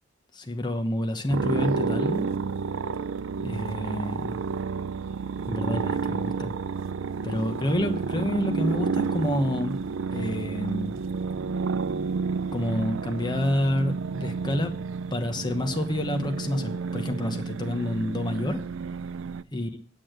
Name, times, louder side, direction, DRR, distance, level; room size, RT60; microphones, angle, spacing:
voice 1, 0.3-2.3 3.4-4.4 5.5-6.5 7.2-9.8 10.1-11.0 12.5-14.8 15.1-18.6 19.5-19.7, left 1 dB, 25° left, 6 dB, 1.1 m, -28 dB
sound 1, 1.3-19.4, right 5 dB, 75° right, 0.4 m, -30 dB
8.5 x 8.5 x 7.8 m, 0.43 s
head